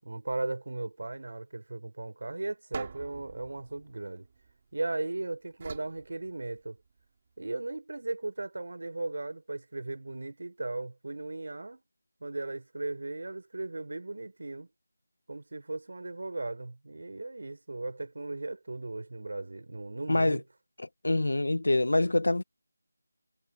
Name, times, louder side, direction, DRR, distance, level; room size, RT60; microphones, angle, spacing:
voice 1, 0.0-4.3 4.7-6.8 7.4-11.8 12.2-14.7 15.3-20.4, right 2 dB, 55° right, 6.7 m, -37 dB
sound 1, 2.7-4.9 5.6-7.0, right 5 dB, 25° right, 5.8 m, -45 dB
voice 2, 20.1-20.4 21.0-22.4, left 2 dB, 70° left, 1.5 m, -25 dB
figure-of-eight pair, 175°, 0 cm